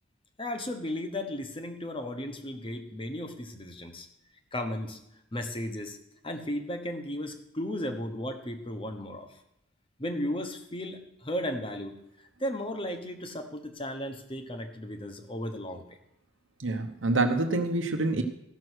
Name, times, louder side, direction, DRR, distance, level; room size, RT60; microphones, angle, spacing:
voice 1, 0.4-4.1 4.5-5.0 5.3-6.0 6.2-9.4 10.0-12.0 12.4-15.9, left 1 dB, 25° left, 6 dB, 1.1 m, -35 dB
voice 2, 16.6-18.2, right 2 dB, 80° right, 5 dB, 1.0 m, -26 dB
14.5 x 6.4 x 6.3 m, 0.80 s
head